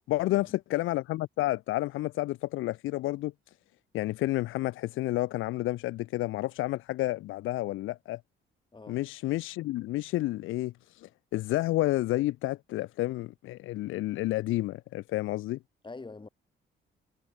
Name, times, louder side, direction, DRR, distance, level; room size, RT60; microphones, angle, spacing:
voice 1, 0.1-3.3 3.9-8.2 8.9-15.6, left 17 dB, 85° left, 0.6 m, -30 dB
voice 2, 8.7-9.0 15.8-16.3, left 3 dB, 25° left, 6.3 m, -44 dB
cardioid pair, 90°, 20 cm